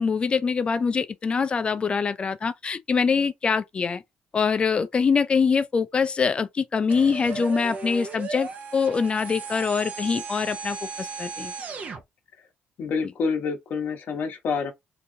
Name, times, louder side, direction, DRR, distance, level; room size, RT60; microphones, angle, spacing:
voice 1, 0.0-4.0 4.3-11.5, left 5 dB, 30° left, 0.4 m, -24 dB
sound 1, 6.9-12.0, right 5 dB, 45° right, 0.8 m, -36 dB
voice 2, 12.8-14.7, left 5 dB, 60° left, 1.1 m, -27 dB
3.9 x 2.7 x 2.7 m
cardioid pair, 135°, 4 cm